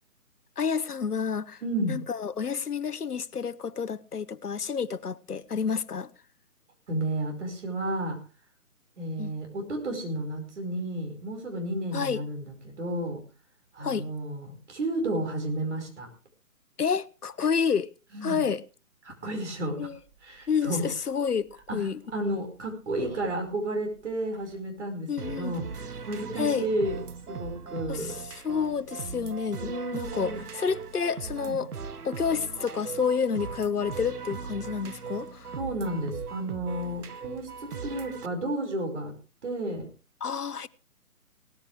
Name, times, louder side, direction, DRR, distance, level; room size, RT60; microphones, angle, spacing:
voice 1, 0.6-1.6 1.9-6.1 9.2-9.3 11.9-12.2 13.8-14.0 16.8-17.9 18.2-18.6 19.8-20.0 20.5-22.0 25.1-25.6 26.4-26.7 27.9-28.2 28.4-31.7 32.0-35.5 40.2-40.7, left 6 dB, 85° left, 0.9 m, -29 dB
voice 2, 1.6-2.0 6.9-8.2 9.0-13.2 13.7-16.1 18.1-18.4 19.1-19.9 20.2-20.9 21.7-27.0 27.3-28.1 29.6-30.4 31.4-31.6 35.6-39.1 39.4-39.9, right 1 dB, 50° right, 5.2 m, -32 dB
sound 1, 19.9-24.8, right 3 dB, 10° right, 1.7 m, -51 dB
sound 2, 25.2-38.3, right 5 dB, 80° right, 1.0 m, -39 dB
18.0 x 14.0 x 3.4 m
figure-of-eight pair, 150°, 45 cm